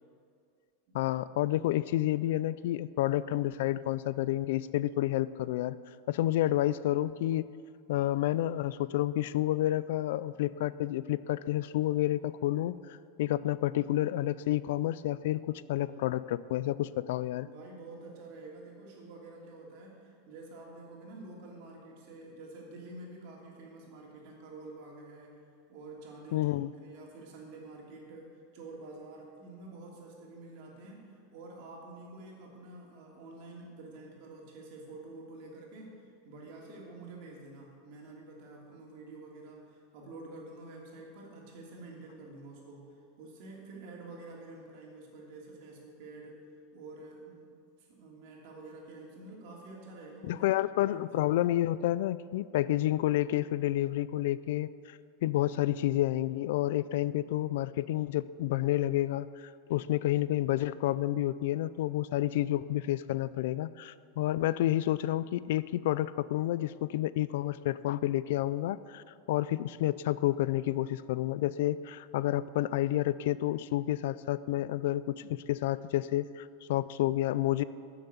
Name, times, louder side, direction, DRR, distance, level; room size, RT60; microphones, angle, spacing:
voice 1, 0.9-5.8 6.1-7.5 7.9-17.5 26.3-26.7 50.2-77.6, left 14 dB, 65° left, 17 dB, 0.3 m, -30 dB
voice 2, 17.4-26.5 26.8-46.4 46.7-47.5 47.8-50.5 50.9-51.1, right 2 dB, 50° right, -2 dB, 3.0 m, -48 dB
12.5 x 7.2 x 8.0 m, 2.3 s
supercardioid pair, 165°, 0 cm